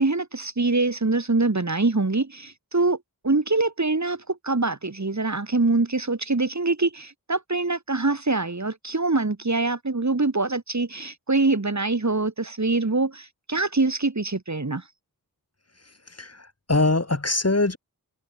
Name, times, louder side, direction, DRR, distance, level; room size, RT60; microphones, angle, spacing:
voice 1, 0.0-3.0 3.2-14.8, right 3 dB, 45° right, 3.3 m, -24 dB
voice 2, 16.2-17.8, left 2 dB, 40° left, 4.5 m, -23 dB
wide cardioid pair, 45°, 39 cm